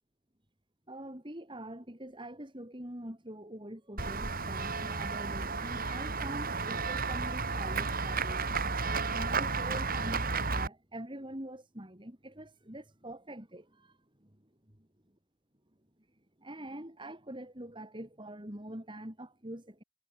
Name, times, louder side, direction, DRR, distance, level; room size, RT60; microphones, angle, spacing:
voice 1, 0.9-8.7 9.1-13.9 16.4-19.8, right 1 dB, 20° right, 3.1 m, -44 dB
Run / Walk footsteps / Bell, 4.0-10.7, right 4 dB, 40° right, 3.8 m, -33 dB
head